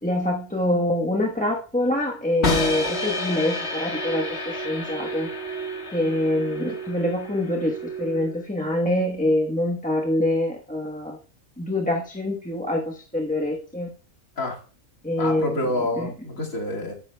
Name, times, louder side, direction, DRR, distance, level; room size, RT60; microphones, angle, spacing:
voice 1, 0.0-5.3 5.9-11.2 11.6-13.9 15.0-15.6 16.0-16.1, left 1 dB, 5° left, -1 dB, 1.0 m, -25 dB
sound 1, 2.4-8.4, left 1 dB, 50° left, 1.8 m, -29 dB
voice 2, 15.2-16.9, left 1 dB, 80° left, -1 dB, 2.5 m, -28 dB
12.5 x 9.9 x 2.2 m, 0.37 s
omnidirectional pair, 1.4 m